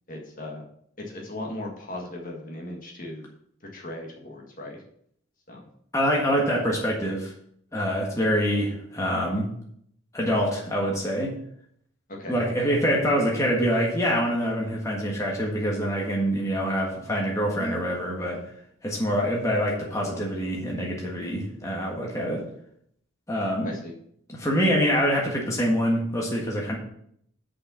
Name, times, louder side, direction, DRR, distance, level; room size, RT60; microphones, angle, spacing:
voice 1, 0.1-0.6 1.0-3.3 3.7-4.8 5.5-5.6 12.1-12.5 23.6-23.9, left 1 dB, 40° left, 0 dB, 1.7 m, -37 dB
voice 2, 5.9-7.3 7.7-9.5 10.1-11.3 12.3-18.4 18.8-22.4 23.3-23.7 24.3-26.7, equal, 15° left, -2 dB, 1.5 m, -25 dB
6.5 x 5.6 x 6.9 m, 0.67 s
head